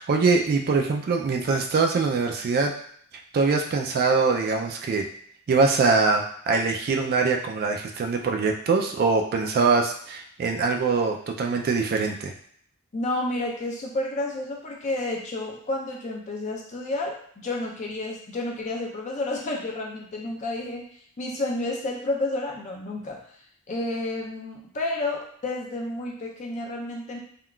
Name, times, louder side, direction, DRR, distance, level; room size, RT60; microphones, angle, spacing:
voice 1, 0.0-2.7 3.3-5.1 5.5-12.3, right 4 dB, 45° right, 2 dB, 0.3 m, -23 dB
voice 2, 12.9-20.8 21.2-23.2 23.7-27.2, left 2 dB, 35° left, -1 dB, 0.4 m, -30 dB
3.6 x 2.3 x 2.2 m, 0.63 s
head